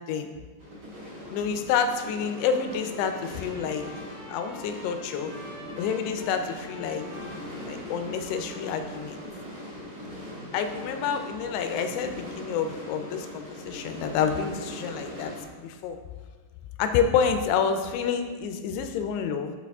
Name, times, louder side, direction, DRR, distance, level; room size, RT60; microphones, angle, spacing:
sound 1, 0.6-15.4, left 1 dB, 40° right, 1.2 m, -40 dB
voice 1, 1.3-3.9 4.3-5.3 5.8-7.1 7.6-9.2 10.5-16.0 16.8-19.5, left 7 dB, 85° left, 7 dB, 2.7 m, -28 dB
Trumpet, 2.3-9.5, right 1 dB, 80° right, 4.8 m, -48 dB
11.0 x 4.1 x 3.5 m, 1.4 s
omnidirectional pair, 4.8 m